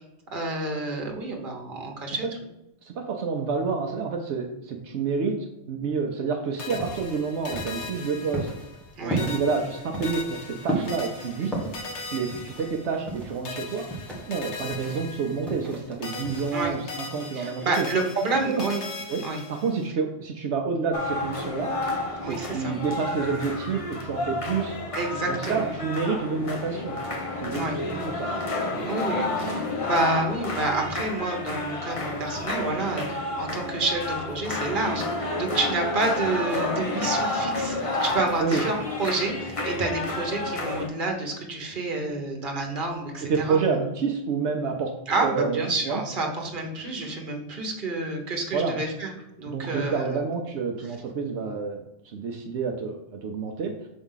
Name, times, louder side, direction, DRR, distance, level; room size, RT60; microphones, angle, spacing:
voice 1, 0.3-2.3 9.0-9.2 16.5-16.7 17.3-18.8 19.2-19.4 22.2-22.7 24.9-25.6 27.5-27.8 28.8-43.6 45.1-49.1 49.4-50.2, right 2 dB, 50° right, 1 dB, 1.3 m, -29 dB
voice 2, 2.8-5.4 5.7-8.5 9.0-11.5 12.1-17.9 18.3-18.6 19.1-19.2 19.5-21.9 22.2-24.8 25.3-27.0 27.4-28.3 28.6-29.6 38.4-38.7 43.2-46.0 48.5-48.8 49.5-53.9, right 5 dB, 80° right, 3 dB, 1.0 m, -29 dB
sound 1, 6.6-8.9 9.2-13.2 13.4-15.8 16.0-19.9, left 4 dB, 85° left, 1.2 m, -39 dB
sound 2, 6.6-16.7, right 1 dB, ahead, 1.3 m, -36 dB
sound 3, 20.9-40.9, left 2 dB, 35° left, 0.8 m, -30 dB
6.2 x 3.5 x 5.6 m, 0.89 s
omnidirectional pair, 1.1 m